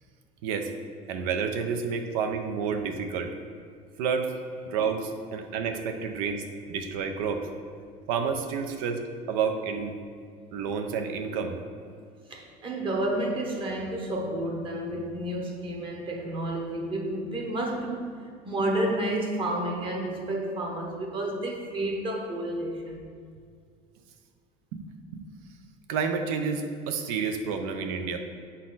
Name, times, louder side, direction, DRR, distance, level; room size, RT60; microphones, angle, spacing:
voice 1, 1.1-3.3 4.0-4.3 4.6-7.5 8.1-9.9 10.5-11.6 24.7-24.9 25.1-25.3 25.9-28.2, right 6 dB, 80° right, 0.7 m, -30 dB
voice 2, 12.3-18.2 18.4-23.0, right 1 dB, 30° right, 1.0 m, -30 dB
7.4 x 4.1 x 4.0 m
cardioid pair, 140°, 18 cm